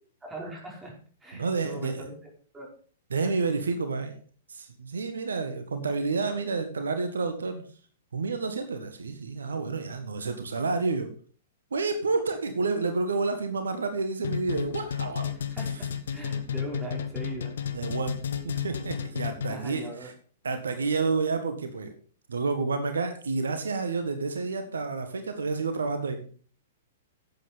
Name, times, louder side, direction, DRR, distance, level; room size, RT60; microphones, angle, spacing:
voice 1, 0.2-2.1 2.5-2.7 15.5-17.5 19.5-20.1, right 2 dB, 10° right, -1 dB, 5.2 m, -40 dB
voice 2, 1.3-2.0 3.1-4.2 4.5-7.6 8.1-11.1 11.7-15.3 17.7-18.2 18.4-20.1 20.4-21.9 22.3-26.2, right 4 dB, 75° right, 8 dB, 1.7 m, -29 dB
sound 1, 14.2-19.8, left 8 dB, 65° left, 1.4 m, -32 dB
11.0 x 8.6 x 5.3 m, 0.43 s
figure-of-eight pair, 110°, 0 cm